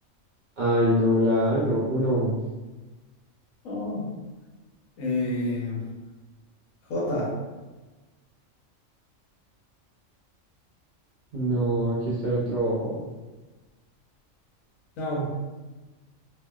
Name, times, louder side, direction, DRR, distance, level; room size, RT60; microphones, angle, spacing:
voice 1, 0.6-2.4 11.3-13.0, equal, 60° right, -8 dB, 0.5 m, -24 dB
voice 2, 3.6-4.1 5.0-5.9 6.9-7.4 15.0-15.3, left 1 dB, 85° left, -3 dB, 1.1 m, -28 dB
3.0 x 2.1 x 2.2 m, 1.2 s
omnidirectional pair, 1.4 m